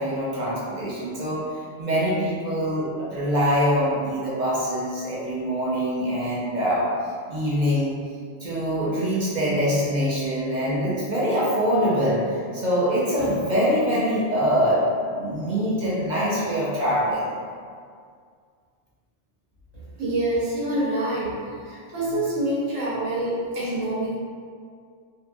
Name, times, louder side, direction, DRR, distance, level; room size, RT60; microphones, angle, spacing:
voice 1, 0.0-1.4 1.8-6.9 7.3-7.9 8.4-17.3, equal, 50° right, -7 dB, 0.5 m, -24 dB
voice 2, 20.0-21.4 21.7-24.2, right 1 dB, 85° right, -7 dB, 1.2 m, -26 dB
2.7 x 2.5 x 2.3 m, 2.1 s
omnidirectional pair, 1.3 m